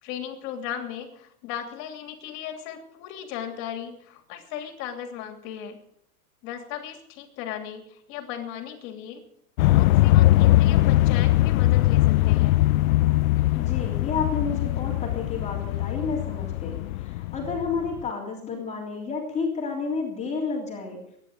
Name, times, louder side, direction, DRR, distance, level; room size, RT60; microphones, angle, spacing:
voice 1, 0.0-5.8 6.4-9.2 9.7-12.5, left 9 dB, 40° left, 5 dB, 3.0 m, -37 dB
sound 1, 9.6-18.0, left 16 dB, 70° left, 0.5 m, -21 dB
voice 2, 13.5-21.0, left 4 dB, 15° left, -1 dB, 3.3 m, -31 dB
23.5 x 10.5 x 5.0 m, 0.72 s
supercardioid pair, 150°, 43 cm